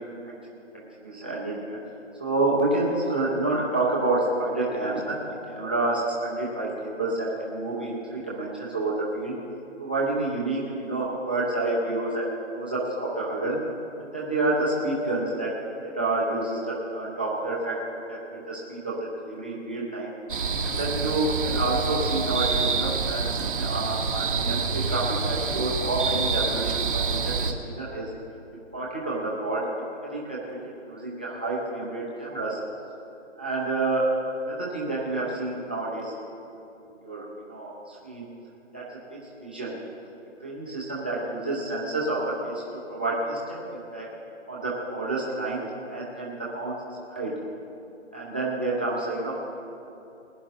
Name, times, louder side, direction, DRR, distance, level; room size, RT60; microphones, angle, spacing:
voice 1, 0.7-1.8 2.2-9.4 9.8-13.6 14.0-15.5 15.8-17.8 18.1-18.9 19.2-20.1 20.6-28.1 28.5-29.6 30.0-30.4 30.9-32.6 33.4-36.1 37.0-38.3 38.7-39.8 40.4-44.1 44.5-46.8 47.1-47.4 48.1-49.4, right 2 dB, 10° right, -7 dB, 0.6 m, -29 dB
sound 1, 20.3-27.5, right 4 dB, 45° right, 0.9 m, -27 dB
20.0 x 10.0 x 3.7 m, 2.8 s
hypercardioid pair, 170°, 37 cm